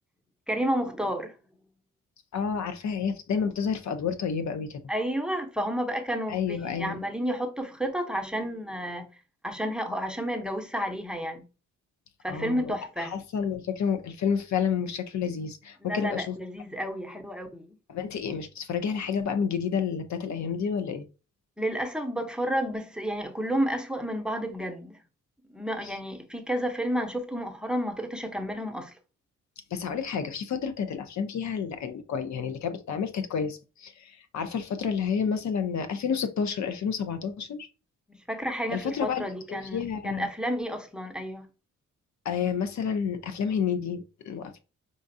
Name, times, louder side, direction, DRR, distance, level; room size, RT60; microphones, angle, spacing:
voice 1, 0.5-1.3 4.9-9.1 9.4-11.4 12.2-13.2 15.8-17.7 21.6-25.0 25.5-29.0 38.1-41.5, equal, 5° right, 0.8 m, -31 dB
voice 2, 2.3-4.8 6.3-7.0 12.3-12.7 13.0-16.4 17.9-21.1 25.8-25.9 29.7-37.7 38.7-40.3 42.2-44.6, left 6 dB, 60° left, 0.6 m, -30 dB
5.1 x 2.4 x 2.6 m
supercardioid pair, 60°, 31 cm